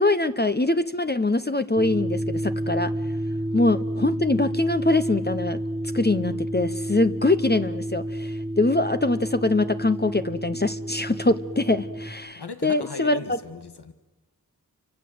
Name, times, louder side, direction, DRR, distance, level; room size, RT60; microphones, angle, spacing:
voice 1, 0.0-2.9 3.5-5.6 5.9-13.4, left 2 dB, 25° left, 10 dB, 0.9 m, -23 dB
sound 1, 1.8-12.1, right 1 dB, ahead, 1.9 m, -30 dB
voice 2, 12.4-13.9, left 3 dB, 90° left, 10 dB, 1.7 m, -37 dB
29.0 x 24.5 x 7.9 m, 1.1 s
wide cardioid pair, 65°, 39 cm